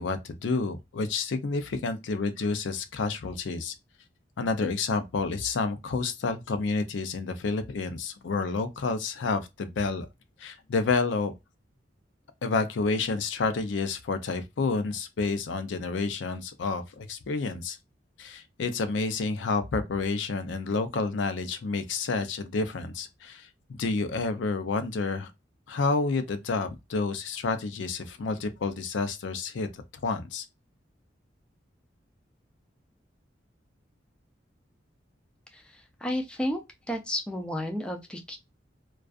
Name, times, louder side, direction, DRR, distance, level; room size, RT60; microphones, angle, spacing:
voice 1, 0.0-3.7 4.4-10.1 10.4-11.3 12.4-17.8 18.2-23.5 23.8-25.3 25.7-29.7 30.0-30.4, left 4 dB, 75° left, 0.4 m, -29 dB
voice 2, 35.5-36.6 36.9-38.4, left 1 dB, 5° left, 0.4 m, -32 dB
2.5 x 2.3 x 2.2 m
head